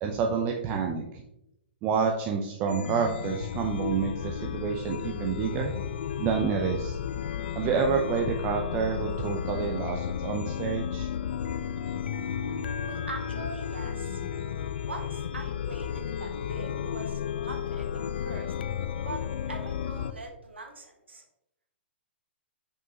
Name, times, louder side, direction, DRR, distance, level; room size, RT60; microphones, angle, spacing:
voice 1, 0.0-1.0 1.8-5.7 6.2-7.0 7.6-11.1, right 6 dB, 30° right, 2 dB, 0.6 m, -28 dB
Chime, 2.7-20.1, left 8 dB, 60° left, 0.4 m, -33 dB
voice 2, 12.8-14.2 14.9-17.9 18.2-18.5 19.0-21.2, right 2 dB, 80° right, 3 dB, 1.3 m, -42 dB
6.2 x 5.3 x 2.9 m, 0.83 s
figure-of-eight pair, 110°, 6 cm